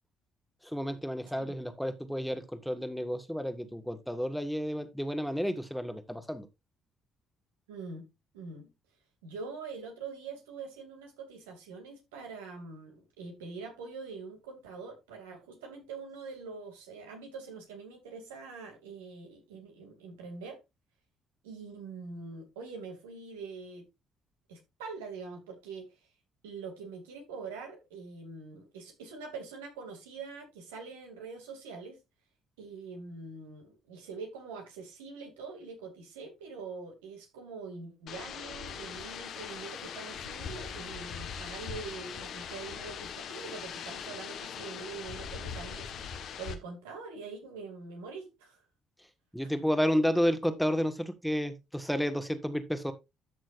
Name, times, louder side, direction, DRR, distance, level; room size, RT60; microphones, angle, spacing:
voice 1, 0.6-6.5 49.3-52.9, equal, ahead, 1.6 m, -31 dB
voice 2, 7.7-8.0 8.3-8.7 9.2-20.6 21.4-23.9 24.5-25.9 26.4-32.0 32.6-45.9 46.4-48.6, right 4 dB, 80° right, 2.6 m, -44 dB
sound 1, 38.1-46.6, left 7 dB, 60° left, 1.3 m, -41 dB
13.0 x 6.2 x 2.5 m
hypercardioid pair, 50°, 0 cm